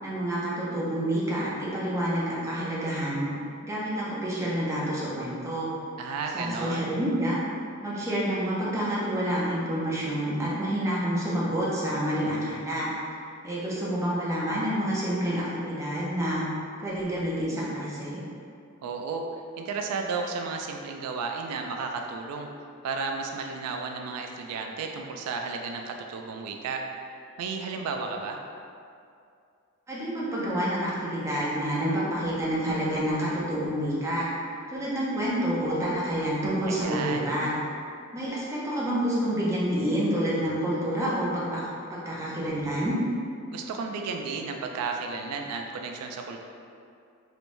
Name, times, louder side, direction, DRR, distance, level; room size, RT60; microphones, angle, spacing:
voice 1, 0.0-3.3 3.6-5.7 6.3-7.4 7.8-12.9 13.4-16.4 16.8-18.2 29.9-34.3 34.7-37.6 38.1-43.0, equal, 15° right, -7 dB, 0.6 m, -28 dB
voice 2, 6.0-6.9 18.8-19.3 19.6-22.5 22.8-26.8 27.4-28.4 36.7-37.3 43.5-46.4, right 4 dB, 90° right, 8 dB, 0.3 m, -33 dB
3.2 x 3.0 x 2.6 m, 2.4 s
head